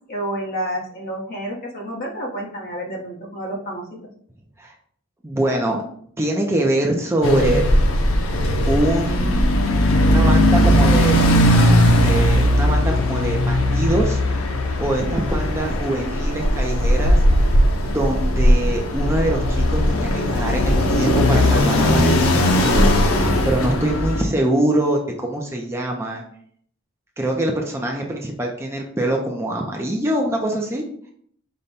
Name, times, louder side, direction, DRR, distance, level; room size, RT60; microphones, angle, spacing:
voice 1, 0.1-3.8, right 1 dB, 45° left, -1 dB, 1.0 m, -29 dB
voice 2, 5.2-5.8 6.2-7.6 8.7-9.4 10.1-11.2 11.6-17.6 17.9-26.2 27.2-30.8, right 1 dB, 15° right, 0 dB, 0.4 m, -24 dB
sound 1, 7.2-24.2, left 1 dB, 80° left, 0.7 m, -18 dB
5.1 x 2.2 x 4.1 m, 0.63 s
head